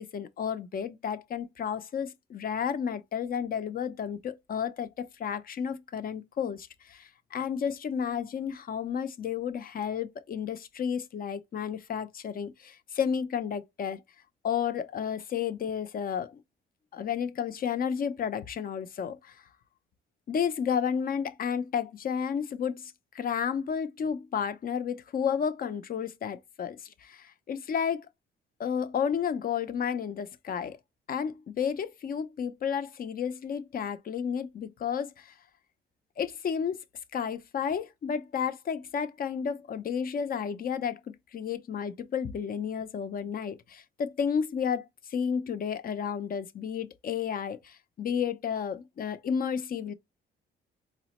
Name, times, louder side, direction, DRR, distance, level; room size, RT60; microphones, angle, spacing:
voice 1, 0.0-14.0 14.4-16.4 16.9-19.3 20.3-28.1 28.6-30.8 31.1-35.3 36.2-36.8 37.1-41.0 41.3-49.9, left 7 dB, 45° left, 0.5 m, -32 dB
4.7 x 2.1 x 2.9 m
cardioid pair, 90°, 20 cm